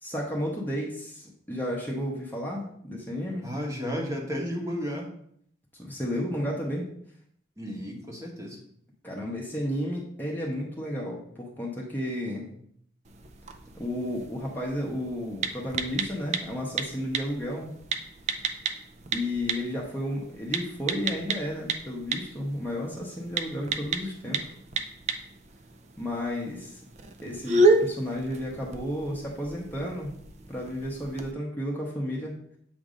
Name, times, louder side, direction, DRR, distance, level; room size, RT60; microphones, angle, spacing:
voice 1, 0.0-3.5 5.7-6.9 9.0-12.5 13.7-17.8 19.1-24.4 26.0-26.8 27.2-30.1 30.5-32.4, left 1 dB, 10° left, -3 dB, 0.8 m, -32 dB
voice 2, 3.4-5.1 7.6-8.6, equal, 15° right, 0 dB, 0.9 m, -33 dB
sound 1, 13.0-31.3, right 3 dB, 35° right, 0.4 m, -32 dB
7.3 x 2.6 x 5.0 m, 0.67 s
head